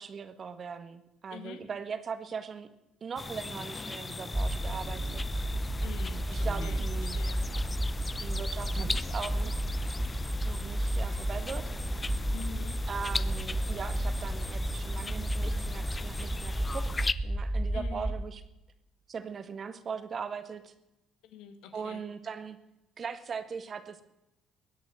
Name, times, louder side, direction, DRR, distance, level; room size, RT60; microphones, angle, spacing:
voice 1, 0.0-2.7 3.0-5.2 6.3-7.2 8.2-9.6 10.4-11.6 12.9-18.4 19.1-20.7 21.7-22.6 23.0-24.0, right 6 dB, 45° right, 10 dB, 1.7 m, -40 dB
voice 2, 1.3-1.6 5.8-7.4 12.3-12.8 17.7-18.1 21.2-22.0, left 8 dB, 80° left, 8 dB, 1.8 m, -46 dB
sound 1, 3.2-17.1, left 3 dB, 25° left, 0.7 m, -39 dB
sound 2, 4.3-18.2, right 1 dB, 15° right, 1.3 m, -32 dB
sound 3, 4.8-5.4 6.2-7.2 8.6-9.1 11.1-11.5, right 5 dB, 65° right, 2.1 m, -46 dB
21.5 x 8.7 x 7.8 m, 0.95 s
supercardioid pair, 75°, 0 cm